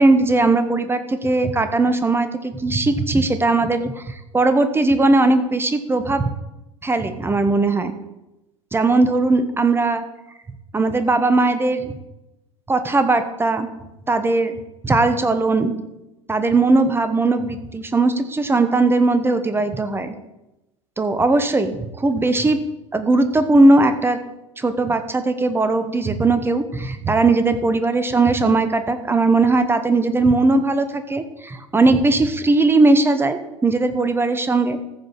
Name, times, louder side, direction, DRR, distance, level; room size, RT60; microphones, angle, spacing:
voice 1, 0.0-6.2 6.8-8.0 8.7-10.0 10.7-11.9 12.7-13.7 14.1-14.6 14.8-15.7 16.3-20.1 21.0-22.6 22.9-24.2 24.6-34.8, right 2 dB, 15° right, 10 dB, 1.0 m, -18 dB
14.5 x 5.2 x 5.8 m, 0.95 s
figure-of-eight pair, 75°, 17 cm